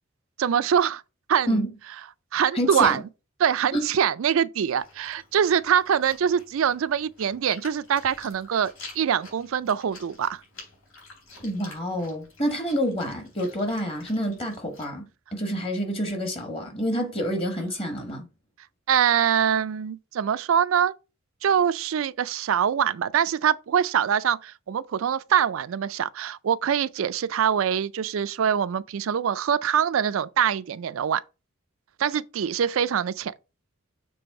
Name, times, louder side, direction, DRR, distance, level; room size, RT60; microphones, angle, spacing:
voice 1, 0.4-1.0 1.3-1.6 2.3-3.0 3.4-10.4 18.9-21.0 21.4-31.2 32.0-33.3, right 8 dB, 70° right, 0.4 m, -24 dB
voice 2, 2.5-3.0 3.7-3.9 11.4-15.0 15.3-18.3, equal, 25° left, 1.2 m, -28 dB
Chewing mastication, 4.8-14.9, left 3 dB, 70° left, 3.7 m, -48 dB
7.0 x 3.3 x 4.6 m
head